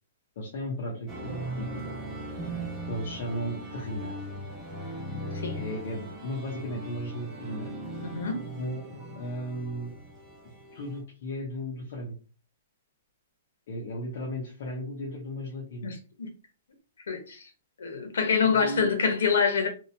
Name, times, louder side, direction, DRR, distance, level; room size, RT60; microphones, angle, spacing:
voice 1, 0.4-1.8 2.9-4.2 5.5-7.7 8.6-9.9 10.7-12.2 13.7-15.9 18.4-18.9, equal, 45° left, 0.6 m, -35 dB
sound 1, 1.1-11.0, right 1 dB, 10° right, 0.5 m, -39 dB
voice 2, 5.1-5.6 8.0-8.4 15.8-16.3 17.1-17.5 17.8-19.7, left 5 dB, 80° left, 0.8 m, -26 dB
2.8 x 2.1 x 2.6 m
hypercardioid pair, 180°, 0 cm